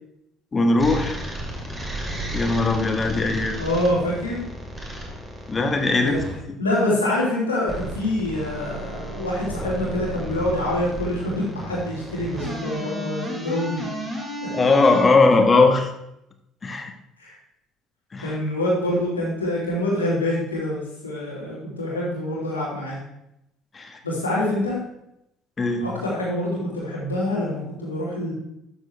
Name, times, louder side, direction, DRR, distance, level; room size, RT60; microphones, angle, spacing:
voice 1, 0.5-1.2 2.3-3.6 5.5-6.2 14.5-15.9 16.6-16.9 18.1-18.4 23.7-24.0 25.6-25.9, left 3 dB, 30° left, 5 dB, 1.4 m, -19 dB
sound 1, 0.8-6.3 7.6-15.1, right 1 dB, 20° right, 2.7 m, -33 dB
voice 2, 3.6-4.4 6.0-6.2 6.6-13.8 17.2-17.4 18.2-23.0 24.0-24.8 25.8-28.3, left 1 dB, 85° left, -6 dB, 3.1 m, -25 dB
13.0 x 7.2 x 3.4 m, 0.82 s
figure-of-eight pair, 55°, 0 cm